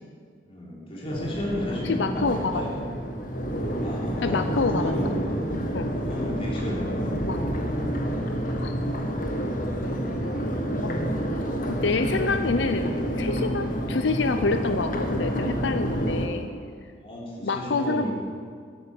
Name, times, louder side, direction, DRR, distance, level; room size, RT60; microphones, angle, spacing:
voice 1, 0.5-2.8 3.8-5.3 5.9-7.2 16.9-18.1, left 1 dB, 35° left, -5 dB, 3.8 m, -33 dB
Crowd, 1.1-16.2, equal, 50° left, 1.5 m, -29 dB
voice 2, 1.8-2.7 4.2-4.9 5.7-5.9 7.1-7.4 8.6-8.7 10.8-11.0 11.7-16.5 17.4-18.1, left 3 dB, 90° left, 8 dB, 0.6 m, -27 dB
13.0 x 8.9 x 7.2 m, 2.1 s
head